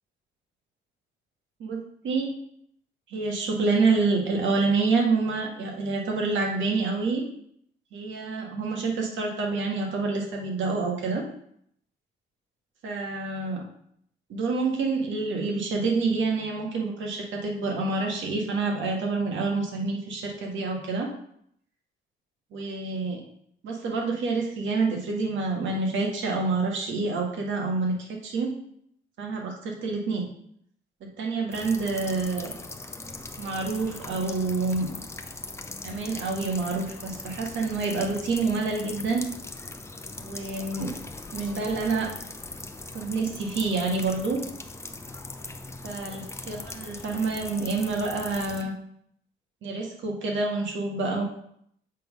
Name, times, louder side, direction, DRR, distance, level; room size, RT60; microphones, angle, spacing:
voice 1, 1.6-2.3 3.1-7.2 7.9-11.2 12.8-13.6 14.3-21.1 22.5-23.2 23.6-28.5 29.2-30.3 31.0-32.5 33.4-34.9 35.8-39.2 40.2-41.0 41.3-42.1 42.9-44.4 45.8-48.7 49.6-51.2, right 3 dB, 70° right, 1 dB, 1.8 m, -27 dB
sound 1, 31.5-48.6, left 2 dB, 15° left, 0.7 m, -40 dB
7.5 x 3.8 x 5.4 m, 0.70 s
cardioid pair, 90°, 20 cm